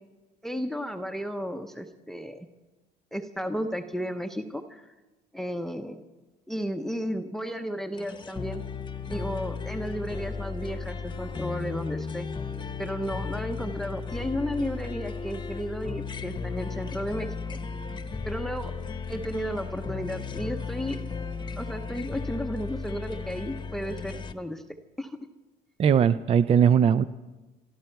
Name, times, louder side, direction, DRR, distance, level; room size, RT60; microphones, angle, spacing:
voice 1, 0.4-2.5 3.1-4.9 5.3-6.0 6.5-8.6 9.1-12.3 12.8-17.3 18.2-18.7 19.1-21.0 21.6-24.6 25.0-25.2, equal, ahead, 7 dB, 0.8 m, -33 dB
sound 1, 8.0-24.3, left 5 dB, 25° left, 1.0 m, -35 dB
voice 2, 25.8-27.0, right 8 dB, 35° right, 14 dB, 0.4 m, -20 dB
24.5 x 12.5 x 4.6 m, 1.1 s
cardioid pair, 110°, 17 cm